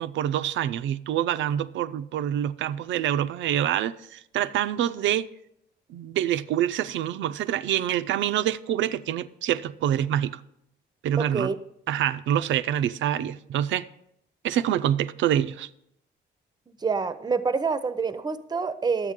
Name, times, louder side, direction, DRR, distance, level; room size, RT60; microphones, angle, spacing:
voice 1, 0.0-5.3 5.9-10.4 11.0-11.5 11.9-13.9 14.4-15.7, right 11 dB, 70° right, 0.4 m, -26 dB
voice 2, 11.2-11.6 16.7-19.1, right 5 dB, 20° right, 0.6 m, -27 dB
10.5 x 8.1 x 3.6 m
cardioid pair, 90°, 20 cm